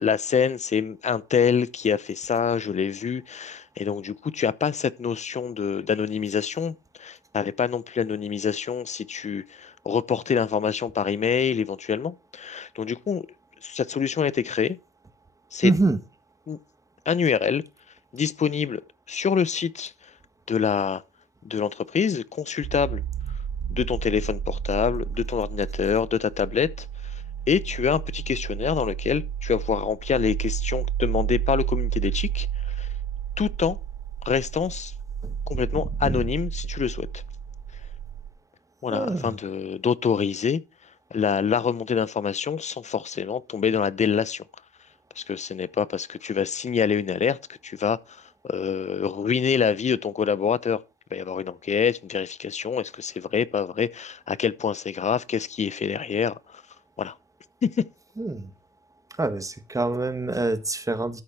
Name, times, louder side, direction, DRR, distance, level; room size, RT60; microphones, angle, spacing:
voice 1, 0.0-13.3 13.6-14.8 15.5-15.7 16.5-16.6 17.1-17.6 18.1-18.8 19.1-19.9 20.5-21.0 21.4-23.0 23.7-26.9 27.5-32.5 32.8-32.9 33.4-33.8 34.2-34.9 35.5-37.2 38.8-40.6 41.1-44.4 45.2-47.4 47.6-48.0 48.4-50.8 51.1-56.4 57.0-57.1 57.6-57.8, left 7 dB, 35° left, 0.8 m, -26 dB
voice 2, 15.6-16.0 35.2-35.3 36.0-36.2 38.9-39.4 58.2-58.5 59.2-61.2, right 2 dB, 15° right, 1.7 m, -25 dB
sound 1, 22.6-38.3, right 9 dB, 65° right, 1.2 m, -31 dB
13.5 x 4.8 x 5.8 m
cardioid pair, 90°, 20 cm